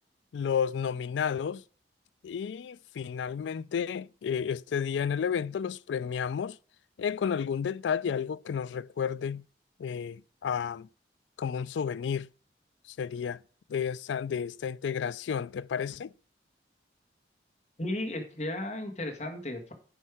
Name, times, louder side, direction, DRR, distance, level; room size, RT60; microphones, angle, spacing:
voice 1, 0.3-1.6 2.2-6.6 7.0-9.4 9.8-10.9 11.4-12.3 12.9-13.4 13.7-16.1, left 7 dB, 85° left, 0.3 m, -31 dB
voice 2, 17.8-19.7, left 1 dB, 40° left, 1.8 m, -34 dB
9.9 x 5.5 x 4.8 m
head